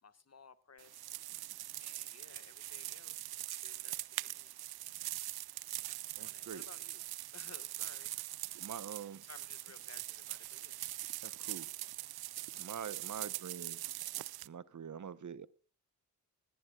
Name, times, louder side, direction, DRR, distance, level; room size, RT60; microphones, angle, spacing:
voice 1, 0.0-1.1 1.8-4.6 5.8-7.0 7.3-8.2 9.2-10.8, left 5 dB, 40° left, 12 dB, 1.5 m, -59 dB
sound 1, 0.8-14.5, right 15 dB, 65° right, 0.5 m, -43 dB
voice 2, 6.2-6.6 8.6-9.2 11.2-11.7 12.5-13.8 14.4-15.5, right 7 dB, 45° right, 17 dB, 0.9 m, -45 dB
20.0 x 15.0 x 2.3 m, 0.36 s
supercardioid pair, 40°, 40 cm